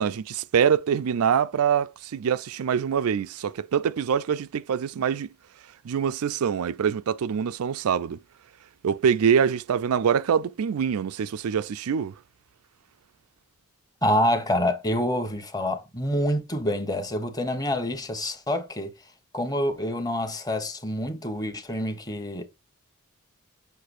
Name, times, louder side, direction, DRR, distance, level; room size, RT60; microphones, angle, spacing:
voice 1, 0.0-5.3 5.8-8.2 8.8-12.1, right 7 dB, 85° right, 0.4 m, -24 dB
voice 2, 14.0-18.9 19.3-22.4, left 1 dB, 15° left, 1.0 m, -27 dB
6.7 x 6.6 x 2.5 m
head